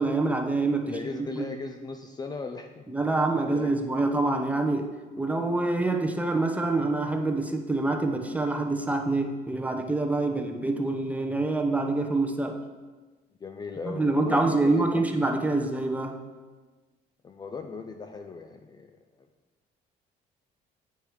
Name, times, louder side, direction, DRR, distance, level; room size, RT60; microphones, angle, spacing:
voice 1, 0.0-1.5 2.9-12.6 13.8-16.2, right 2 dB, 10° right, 4 dB, 0.8 m, -26 dB
voice 2, 0.8-2.8 3.4-3.7 4.1-4.3 13.4-15.1 17.2-19.0, left 4 dB, 25° left, 5 dB, 0.4 m, -38 dB
8.2 x 4.6 x 4.9 m, 1.3 s
cardioid pair, 110°, 17 cm